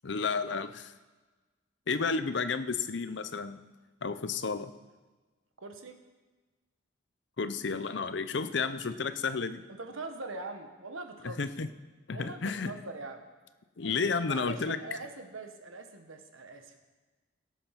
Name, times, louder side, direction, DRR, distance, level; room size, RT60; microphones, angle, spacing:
voice 1, 0.0-0.9 1.9-3.6 4.0-4.7 7.4-9.6 11.2-11.7 12.1-12.7 13.8-14.8, left 4 dB, 60° left, 12 dB, 0.6 m, -32 dB
voice 2, 5.6-6.0 9.7-11.5 12.1-13.3 14.0-16.8, right 3 dB, 85° right, 6 dB, 1.3 m, -42 dB
18.0 x 7.1 x 5.8 m, 1.3 s
head